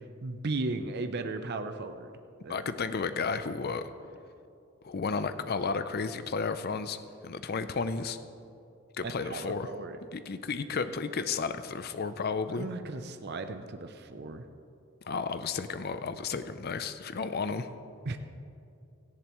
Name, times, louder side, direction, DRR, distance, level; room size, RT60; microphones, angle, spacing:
voice 1, 0.2-2.1 2.4-2.7 9.0-10.0 12.6-14.4 18.1-18.2, right 3 dB, 45° right, 8 dB, 0.6 m, -36 dB
voice 2, 2.5-3.9 4.8-7.0 7.2-8.2 9.0-9.7 10.1-12.7 15.1-17.7, left 4 dB, 45° left, 11 dB, 0.5 m, -32 dB
17.5 x 13.5 x 3.1 m, 2.6 s
head